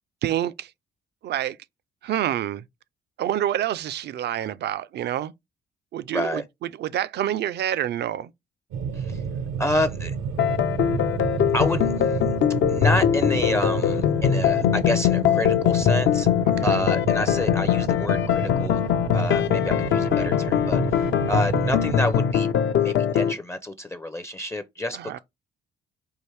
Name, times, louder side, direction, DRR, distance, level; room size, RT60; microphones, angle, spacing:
voice 1, 0.2-0.7 1.2-1.6 2.0-2.6 3.2-5.3 5.9-6.4 6.8-8.3 16.6-16.8 24.9-25.2, right 11 dB, 60° right, 0.4 m, -27 dB
voice 2, 6.1-6.4 8.9-9.2 9.6-10.2 11.5-12.2 12.7-16.3 16.6-18.8 19.1-22.5 22.8-25.2, left 1 dB, 15° left, 0.4 m, -29 dB
sound 1, 8.7-22.0, right 6 dB, 90° right, 0.8 m, -31 dB
sound 2, 10.4-23.3, left 9 dB, 70° left, 0.6 m, -22 dB
4.7 x 2.5 x 3.3 m
cardioid pair, 90°, 20 cm